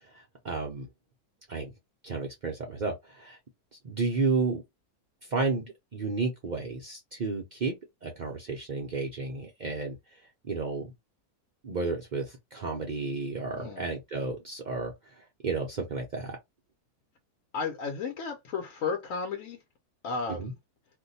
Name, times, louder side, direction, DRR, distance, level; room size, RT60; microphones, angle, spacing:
voice 1, 0.1-0.9 1.5-1.7 2.0-3.4 3.8-4.6 5.3-5.6 5.9-7.7 8.0-10.2 10.5-10.9 11.6-14.9 15.4-16.4 20.4-20.5, right 3 dB, 85° right, 0.4 m, -32 dB
voice 2, 13.5-13.8 17.5-19.6 20.0-20.5, left 5 dB, 65° left, 1.0 m, -33 dB
2.6 x 2.2 x 3.9 m
omnidirectional pair, 1.6 m